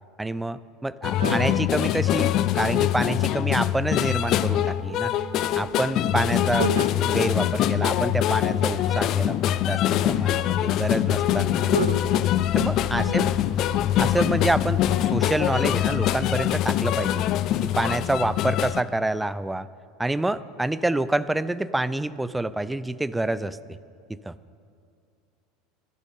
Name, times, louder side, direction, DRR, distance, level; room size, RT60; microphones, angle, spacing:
voice 1, 0.2-5.1 5.6-11.7 12.5-13.3 14.0-17.2 17.8-19.7 20.0-23.6 24.1-24.3, right 2 dB, 10° right, 16 dB, 0.5 m, -27 dB
sound 1, 1.0-18.8, left 12 dB, 50° left, 0.5 m, -23 dB
voice 2, 1.2-1.6 6.6-6.9 11.7-12.2 13.0-13.4, right 6 dB, 80° right, 16 dB, 0.4 m, -30 dB
sound 2, 3.5-9.0, right 1 dB, 45° right, 2.2 m, -43 dB
14.0 x 11.5 x 6.7 m, 2.3 s
figure-of-eight pair, 75°, 0 cm